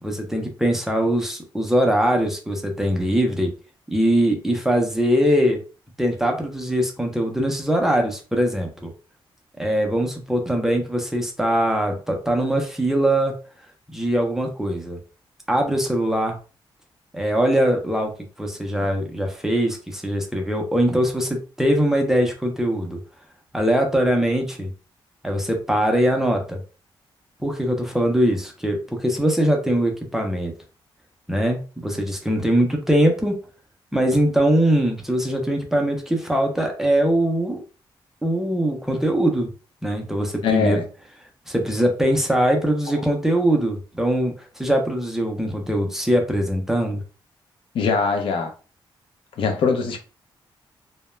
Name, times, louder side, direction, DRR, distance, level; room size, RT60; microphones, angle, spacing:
voice 1, 0.0-3.5 3.9-5.6 6.0-8.9 9.6-13.4 13.9-15.0 15.5-16.4 17.1-18.1 18.4-23.0 23.5-24.7 25.2-26.6 27.4-30.5 31.3-33.4 33.9-37.6 38.2-39.5 39.8-40.8 41.5-47.0, right 1 dB, 5° right, 0.5 m, -22 dB
voice 2, 40.4-40.8 47.7-48.5 49.4-50.0, left 5 dB, 75° left, 0.5 m, -22 dB
2.2 x 2.0 x 3.1 m
wide cardioid pair, 160°, 9 cm